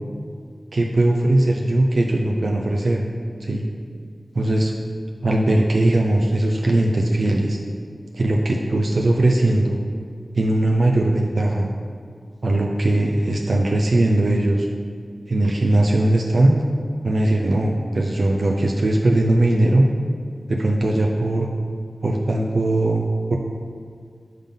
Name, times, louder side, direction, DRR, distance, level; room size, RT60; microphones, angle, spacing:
voice 1, 0.7-3.0 3.4-3.7 4.3-4.7 5.2-7.6 8.1-9.8 10.3-11.7 12.4-14.7 15.3-16.6 17.0-19.9 20.5-21.5 22.0-23.4, right 1 dB, 75° right, 0 dB, 0.4 m, -19 dB
5.5 x 3.7 x 5.3 m, 2.1 s
wide cardioid pair, 65°, 0 cm